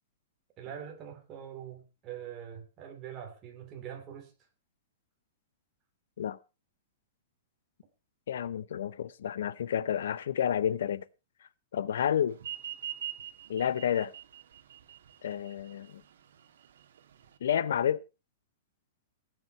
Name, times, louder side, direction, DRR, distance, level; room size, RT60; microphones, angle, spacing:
voice 1, 0.6-4.3, right 9 dB, 20° right, 3.1 m, -43 dB
voice 2, 8.3-11.0 11.7-12.4 13.5-14.1 15.2-16.0 17.4-18.0, left 9 dB, 75° left, 0.8 m, -30 dB
sound 1, 12.4-17.4, right 11 dB, 70° right, 2.0 m, -43 dB
17.5 x 9.8 x 4.5 m
supercardioid pair, 175°, 0 cm